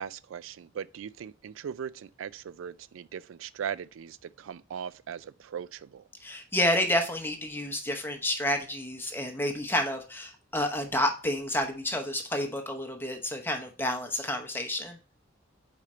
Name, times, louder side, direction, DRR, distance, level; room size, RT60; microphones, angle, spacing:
voice 1, 0.0-6.0, right 8 dB, 75° right, 0.4 m, -39 dB
voice 2, 6.2-15.0, left 1 dB, 10° left, 0.9 m, -30 dB
4.9 x 4.3 x 4.9 m
head